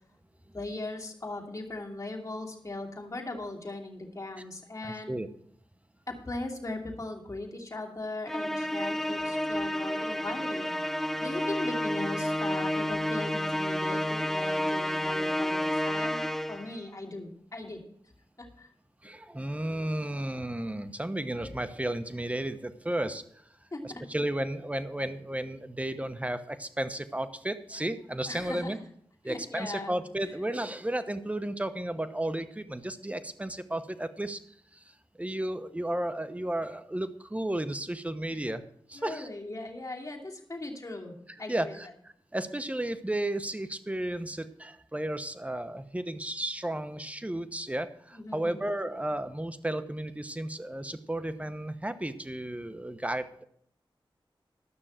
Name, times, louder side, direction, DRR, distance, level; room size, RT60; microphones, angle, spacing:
voice 1, 0.5-5.2 6.1-10.7 11.2-16.2 16.5-17.8 18.4-18.7 23.7-24.0 28.3-28.8 29.2-30.3 38.9-41.8 48.1-48.7, left 2 dB, 35° left, 0 dB, 2.8 m, -39 dB
voice 2, 4.8-5.3 19.0-23.2 23.8-28.8 29.2-34.4 34.7-38.6 38.9-39.3 41.5-53.4, right 1 dB, 15° right, 10 dB, 1.0 m, -33 dB
Musical instrument, 8.3-16.8, left 1 dB, 5° left, 0.4 m, -30 dB
12.5 x 6.3 x 7.5 m, 0.65 s
wide cardioid pair, 55°, 9 cm